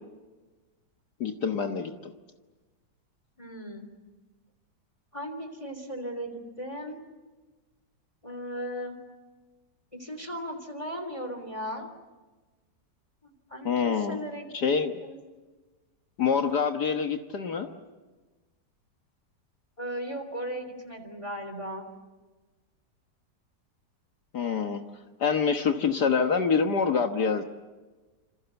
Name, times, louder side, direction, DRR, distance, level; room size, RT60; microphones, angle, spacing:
voice 1, 1.2-2.1 13.7-14.2 14.5-15.0 16.2-17.7 24.3-24.8 25.2-27.4, left 6 dB, 65° left, 5 dB, 1.9 m, -26 dB
voice 2, 3.4-3.9 5.1-7.0 8.2-9.0 9.9-11.9 13.2-15.2 19.8-21.9, equal, 15° left, 6 dB, 3.3 m, -37 dB
27.5 x 27.5 x 7.0 m, 1.3 s
omnidirectional pair, 1.9 m